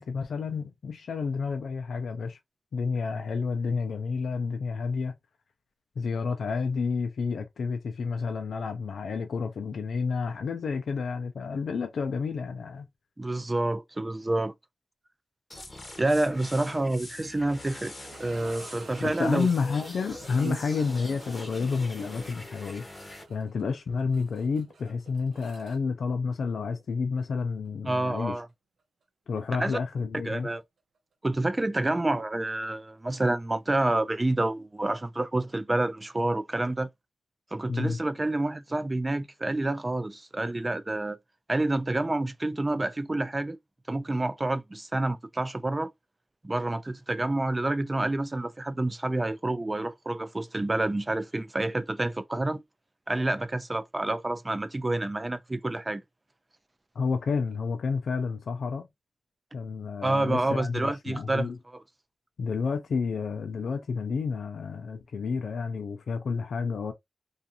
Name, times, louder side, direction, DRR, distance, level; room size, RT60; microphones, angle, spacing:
voice 1, 0.0-2.4 2.7-5.1 6.0-12.9 19.0-22.9 23.3-28.4 29.3-30.5 37.7-38.0 57.0-58.9 59.5-61.6 62.4-66.9, left 5 dB, 75° left, 0.4 m, -30 dB
voice 2, 13.2-14.5 16.0-17.9 18.2-19.5 20.4-20.6 27.9-28.5 29.6-29.8 30.2-30.6 31.2-36.9 37.5-41.2 41.5-43.6 43.9-45.9 46.4-52.6 53.1-56.0 59.5-59.6 60.0-61.5, right 2 dB, 20° right, 0.3 m, -28 dB
sound 1, 15.5-23.2, left 1 dB, 15° left, 0.7 m, -44 dB
sound 2, 18.0-26.9 27.2-27.3 27.9-28.0 30.6-30.7, right 3 dB, 90° right, 0.6 m, -50 dB
2.5 x 2.4 x 2.7 m
wide cardioid pair, 155°, 0 cm